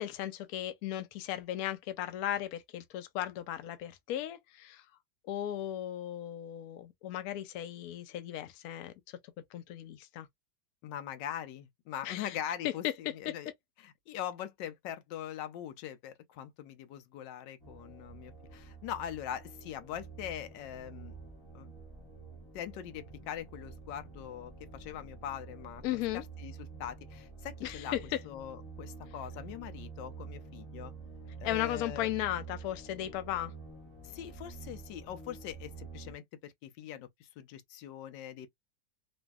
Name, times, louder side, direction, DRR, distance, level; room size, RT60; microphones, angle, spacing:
voice 1, 0.0-4.8 5.3-8.9 9.5-10.3 12.0-12.4 12.8-12.9 13.3-13.4 25.8-26.2 27.6-28.2 31.4-33.5, left 13 dB, 70° left, 1.0 m, -36 dB
voice 2, 10.8-13.5 13.8-21.2 21.5-21.7 22.5-25.8 26.1-26.5 26.8-27.9 28.2-30.9 31.4-32.1 34.0-38.5, left 10 dB, 90° left, 1.3 m, -42 dB
sound 1, 17.6-36.1, right 5 dB, 30° left, 0.4 m, -48 dB
3.1 x 2.6 x 2.3 m
omnidirectional pair, 1.9 m